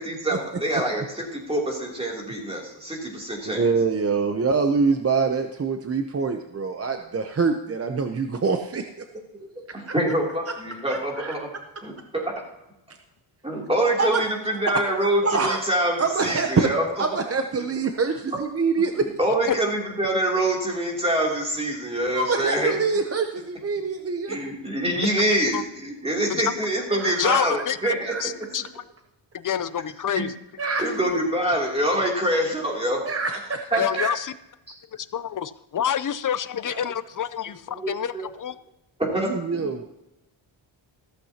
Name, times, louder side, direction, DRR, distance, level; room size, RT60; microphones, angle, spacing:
voice 1, 0.0-3.7 9.4-11.5 11.8-12.4 13.4-17.1 17.6-17.7 18.9-22.7 24.3-28.3 30.1-30.2 30.8-33.0 33.7-33.8 37.7-38.3 39.0-39.7, right 1 dB, 10° right, -2 dB, 2.9 m, -25 dB
voice 2, 3.4-8.9 9.8-9.9 10.9-11.3 14.0-14.2 14.7-14.8 15.2-15.6 16.0-16.7 17.0-19.1 22.1-24.4 26.9-27.4 28.1-28.2 30.6-30.9 33.0-34.1 36.7-36.8 39.2-39.8, right 4 dB, 30° right, 5 dB, 0.7 m, -25 dB
voice 3, 27.2-27.9 28.2-28.8 29.3-30.4 33.8-34.3 35.1-38.5, left 9 dB, 45° left, 14 dB, 0.6 m, -27 dB
15.0 x 13.5 x 2.9 m, 0.93 s
wide cardioid pair, 160°, 47 cm